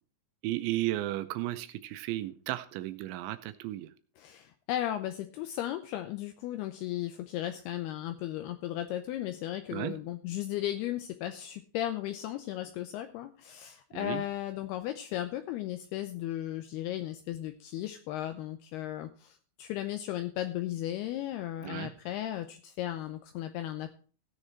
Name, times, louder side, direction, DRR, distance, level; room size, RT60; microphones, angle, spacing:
voice 1, 0.4-3.9 9.7-10.0 13.9-14.2 21.6-21.9, right 16 dB, 80° right, 11 dB, 2.9 m, -34 dB
voice 2, 4.2-23.9, left 13 dB, 85° left, 8 dB, 2.3 m, -36 dB
16.5 x 6.6 x 4.4 m, 0.39 s
omnidirectional pair, 5.4 m